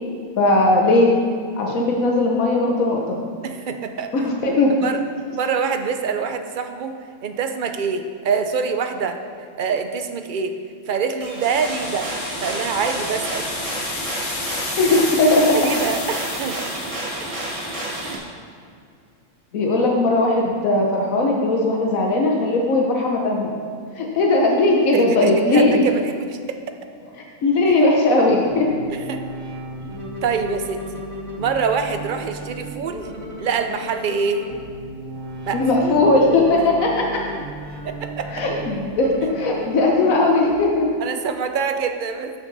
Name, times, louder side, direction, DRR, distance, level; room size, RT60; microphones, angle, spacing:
voice 1, 0.4-1.1 1.6-3.2 4.1-4.7 14.8-15.6 19.5-23.5 24.0-25.8 27.4-28.7 35.5-37.0 38.3-40.9, left 2 dB, 90° left, -1 dB, 1.4 m, -18 dB
voice 2, 3.4-4.1 4.8-5.0 5.3-6.9 7.2-9.2 9.6-10.6 10.9-12.1 12.4-13.5 15.5-16.6 18.0-18.2 24.9-26.4 27.7-27.8 28.9-29.2 30.2-31.0 31.4-33.1 33.4-34.4 35.5-36.0 37.8-38.3 41.0-42.3, right 5 dB, 50° right, 7 dB, 0.6 m, -25 dB
sound 1, 11.2-18.1, right 1 dB, 25° right, 1.5 m, -30 dB
sound 2, 11.4-17.1, left 3 dB, 40° left, 1.1 m, -32 dB
sound 3, 28.5-40.5, equal, 85° right, 1.7 m, -35 dB
12.5 x 6.3 x 4.0 m, 2.3 s
omnidirectional pair, 1.4 m